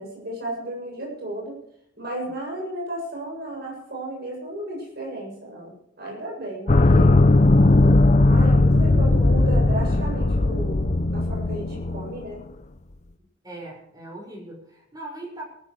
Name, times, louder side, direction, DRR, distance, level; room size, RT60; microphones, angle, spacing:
voice 1, 0.0-1.6 2.0-7.2 8.3-10.8 11.1-12.4, right 1 dB, 55° right, -2 dB, 7.6 m, -34 dB
voice 2, 6.6-7.1 8.6-8.7 13.4-15.4, right 2 dB, 20° right, -2 dB, 6.1 m, -40 dB
sound 1, 6.7-12.2, left 2 dB, 40° left, 0.7 m, -18 dB
23.5 x 14.5 x 3.3 m, 0.79 s
head